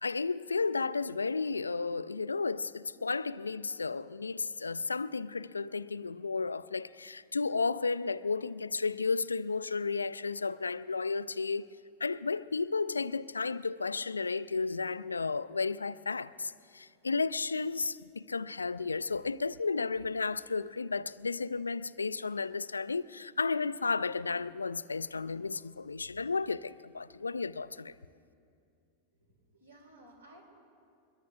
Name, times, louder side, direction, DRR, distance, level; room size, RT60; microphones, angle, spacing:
voice 1, 0.0-11.7 12.0-27.9, left 4 dB, 75° left, 0.3 m, -33 dB
voice 2, 29.1-30.4, right 1 dB, 75° right, 4.1 m, -57 dB
22.5 x 22.5 x 2.4 m
figure-of-eight pair, 90°, 0 cm